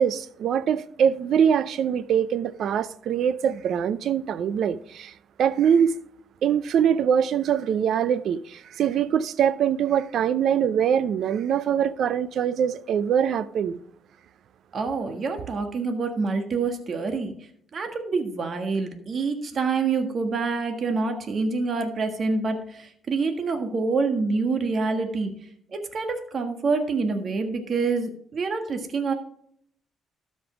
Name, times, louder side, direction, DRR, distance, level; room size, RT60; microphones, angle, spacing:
voice 1, 0.0-5.1 5.4-5.9 6.4-13.8, right 8 dB, 70° right, 0.6 m, -23 dB
voice 2, 14.7-17.3 17.7-25.3 25.7-29.1, right 4 dB, 50° right, 1.5 m, -26 dB
12.5 x 5.4 x 5.0 m
cardioid pair, 90°, 0 cm